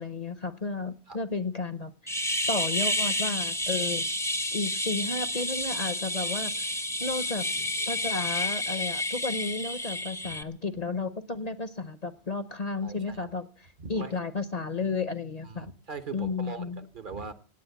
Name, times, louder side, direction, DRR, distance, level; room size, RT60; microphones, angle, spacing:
voice 1, 0.0-4.1 4.5-6.7 7.0-7.4 7.9-13.5 13.9-15.7 16.1-16.8, left 3 dB, 40° left, 13 dB, 0.8 m, -33 dB
sound 1, 2.1-10.4, left 1 dB, 5° left, 0.6 m, -30 dB
voice 2, 12.8-13.3 13.8-14.1 15.4-17.3, right 4 dB, 50° right, 11 dB, 1.2 m, -41 dB
17.0 x 8.9 x 7.9 m, 0.43 s
omnidirectional pair, 1.1 m